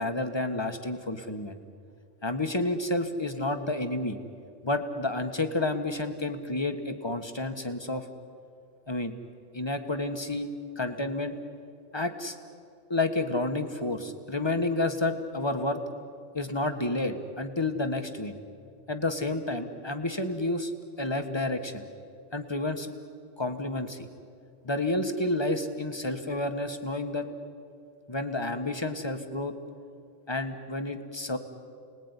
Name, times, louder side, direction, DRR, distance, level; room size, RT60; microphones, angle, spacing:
voice 1, 0.0-1.6 2.2-4.2 4.6-8.1 8.9-9.1 9.5-11.4 11.9-12.4 12.9-15.8 16.3-18.4 18.9-20.7 21.0-21.8 22.3-22.9 23.4-24.0 24.6-27.3 28.1-29.5 30.3-31.4, left 2 dB, 20° left, 7 dB, 1.6 m, -30 dB
30.0 x 20.0 x 9.9 m, 2.4 s
omnidirectional pair, 1.3 m